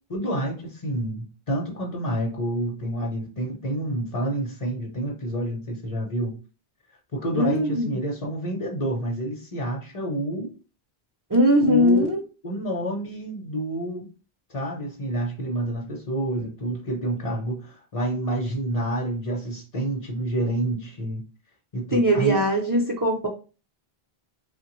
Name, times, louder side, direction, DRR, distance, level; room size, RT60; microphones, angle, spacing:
voice 1, 0.1-6.3 7.1-10.5 11.6-12.2 12.4-14.1 14.5-21.2 21.7-22.4, right 1 dB, 40° left, -1 dB, 0.6 m, -28 dB
voice 2, 7.3-8.0 11.3-12.2 21.9-23.3, equal, 35° right, 0 dB, 0.3 m, -20 dB
3.2 x 2.1 x 2.9 m, 0.34 s
omnidirectional pair, 1.0 m